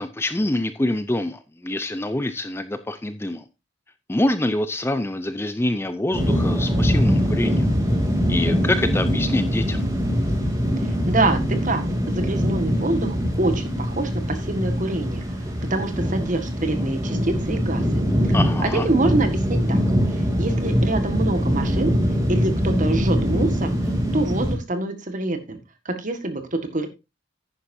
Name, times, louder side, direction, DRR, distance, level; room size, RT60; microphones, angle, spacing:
voice 1, 0.0-3.4 4.1-7.7 8.3-9.9 18.3-18.9, left 1 dB, 15° left, 0.5 m, -25 dB
sound 1, 6.1-24.5, equal, 20° right, 2.9 m, -23 dB
voice 2, 10.8-15.2 15.7-17.8 18.6-19.8 20.1-21.9 22.3-23.7 24.1-25.6 25.8-26.9, right 2 dB, 45° right, 1.7 m, -26 dB
10.0 x 10.0 x 2.7 m
head